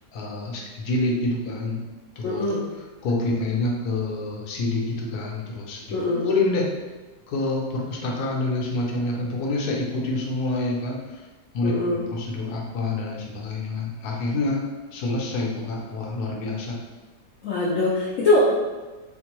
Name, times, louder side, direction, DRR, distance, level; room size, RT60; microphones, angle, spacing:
voice 1, 0.1-1.8 2.2-2.4 3.0-5.8 6.1-6.7 7.3-11.2 11.5-11.7 12.1-14.6 14.9-16.8, left 2 dB, 65° left, -2 dB, 1.1 m, -27 dB
voice 2, 2.2-2.6 5.9-6.3 11.6-12.0 17.4-18.5, left 2 dB, 80° left, -6 dB, 0.7 m, -22 dB
4.3 x 2.1 x 2.9 m, 1.2 s
omnidirectional pair, 2.0 m